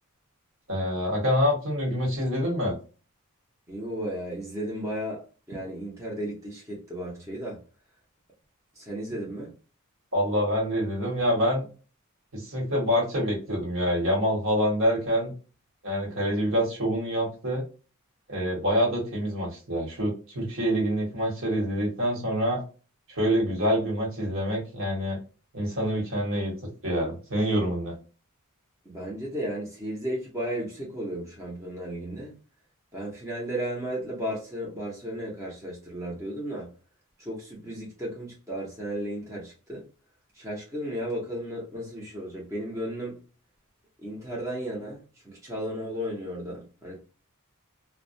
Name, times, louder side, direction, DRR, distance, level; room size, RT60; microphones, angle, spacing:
voice 1, 0.7-2.8 10.1-11.7 12.3-15.3 15.8-17.6 18.3-22.6 23.1-25.2 25.5-26.5 26.8-27.9, equal, 60° right, 1.2 m, -26 dB
voice 2, 3.7-7.6 8.8-9.5 28.9-32.4 32.9-36.7 37.2-39.8 40.3-43.2 44.0-47.0, equal, 15° right, 0.7 m, -34 dB
2.2 x 2.1 x 2.6 m
head